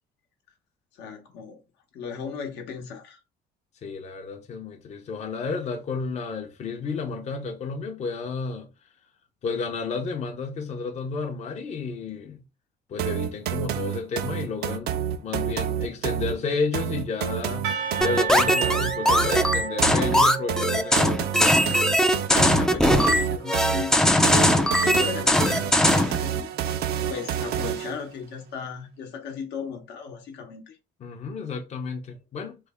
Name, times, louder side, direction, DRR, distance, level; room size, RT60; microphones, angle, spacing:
voice 1, 1.0-1.6 1.9-3.2 22.3-24.2 24.5-26.5 27.1-30.8, left 6 dB, 80° left, 0.9 m, -36 dB
voice 2, 3.8-8.7 9.4-12.4 12.9-14.9 15.2-17.7 18.0-21.2 31.0-32.6, left 4 dB, 40° left, 0.6 m, -31 dB
sound 1, 13.0-28.0, right 9 dB, 70° right, 0.4 m, -29 dB
Percussion / Church bell, 17.6-22.4, right 7 dB, 85° right, 0.8 m, -33 dB
sound 2, 18.0-26.2, left 1 dB, 5° left, 0.3 m, -20 dB
3.2 x 2.1 x 3.4 m
cardioid pair, 110°, 17 cm